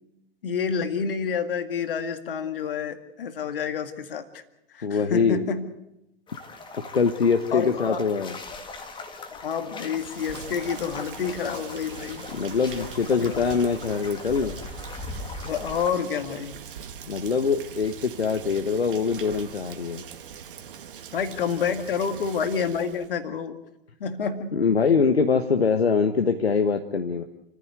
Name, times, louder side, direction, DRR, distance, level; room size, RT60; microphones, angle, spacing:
voice 1, 0.4-4.4 4.7-5.7 7.5-8.0 9.3-12.2 13.2-13.4 15.4-16.6 21.1-23.6 24.0-24.6, left 6 dB, 60° left, 9 dB, 2.2 m, -28 dB
voice 2, 4.8-5.4 6.7-8.4 12.3-14.5 17.1-20.0 24.5-27.2, left 5 dB, 75° left, 6 dB, 1.3 m, -23 dB
sound 1, 6.3-15.9, left 3 dB, 15° left, 2.0 m, -40 dB
Rain, 9.9-23.1, right 8 dB, 55° right, 2.3 m, -42 dB
28.5 x 14.5 x 8.0 m, 0.86 s
figure-of-eight pair, 100°, 31 cm